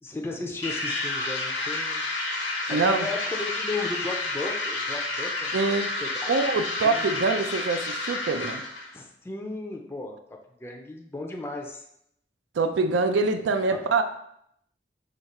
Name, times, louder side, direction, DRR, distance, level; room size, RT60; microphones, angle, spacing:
voice 1, 0.0-2.1 2.5-5.6 6.0-6.6 6.9-7.2 8.9-10.2 10.6-11.8 13.7-13.8, left 2 dB, 15° left, 1 dB, 0.4 m, -35 dB
sound 1, 0.6-8.9, left 2 dB, 80° left, 0.9 m, -30 dB
voice 2, 2.7-3.1 5.5-5.9 6.3-8.6 12.6-14.0, right 3 dB, 90° right, 8 dB, 0.4 m, -24 dB
5.0 x 2.4 x 4.1 m, 0.74 s
head